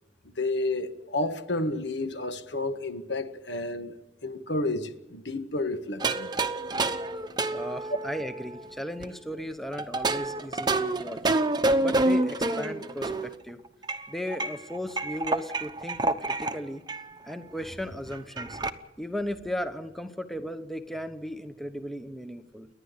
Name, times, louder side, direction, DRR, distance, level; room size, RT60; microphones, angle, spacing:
voice 1, 0.4-3.9 4.2-6.3, left 2 dB, 70° left, 1.5 m, -31 dB
sound 1, 6.0-9.1 9.7-13.3 13.8-16.6 16.9-17.0 17.3-17.4 17.6-18.7, right 2 dB, 25° right, 0.9 m, -28 dB
voice 2, 7.5-11.3 11.8-13.6 14.1-16.8 17.2-18.6 19.0-22.7, equal, ahead, 0.9 m, -36 dB
29.5 x 11.0 x 8.3 m
head